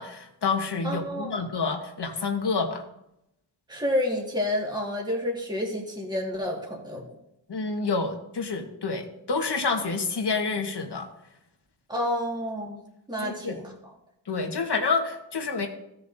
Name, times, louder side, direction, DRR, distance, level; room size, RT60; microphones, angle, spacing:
voice 1, 0.0-2.8 7.5-11.1 13.2-13.5 14.3-15.7, left 4 dB, 55° left, 4 dB, 1.5 m, -28 dB
voice 2, 0.8-1.4 3.7-7.1 11.9-12.8 13.1-13.7, left 1 dB, 10° right, -2 dB, 2.0 m, -29 dB
16.0 x 7.2 x 2.7 m, 0.84 s
wide cardioid pair, 90°, 48 cm